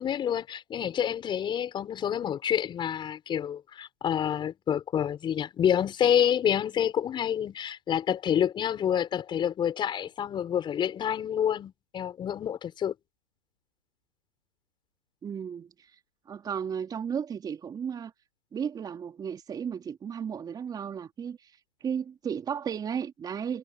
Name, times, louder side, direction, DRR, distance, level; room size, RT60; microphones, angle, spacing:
voice 1, 0.0-12.9, left 9 dB, 15° left, 5.6 m, -28 dB
voice 2, 15.2-15.7 16.3-18.1 18.5-21.5 21.8-23.6, right 7 dB, 15° right, 3.9 m, -34 dB
hypercardioid pair, 140°, 30 cm